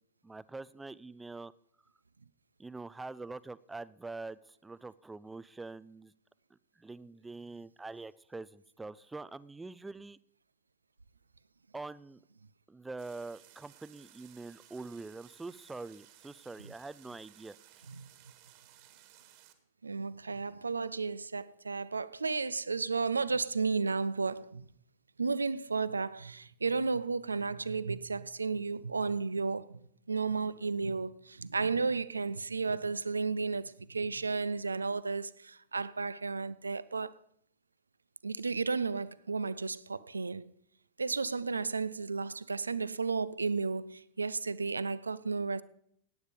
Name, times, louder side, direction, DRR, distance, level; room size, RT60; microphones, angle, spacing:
voice 1, 0.2-1.5 2.6-6.1 6.8-10.2 11.7-12.2 12.7-17.6, right 3 dB, 10° right, 0.4 m, -44 dB
sound 1, 13.0-19.5, right 13 dB, 45° right, 1.7 m, -59 dB
voice 2, 19.8-24.7 25.2-37.1 38.2-40.5 41.0-45.6, right 4 dB, 75° right, 0.4 m, -33 dB
16.5 x 9.6 x 5.1 m
figure-of-eight pair, 90°, 0 cm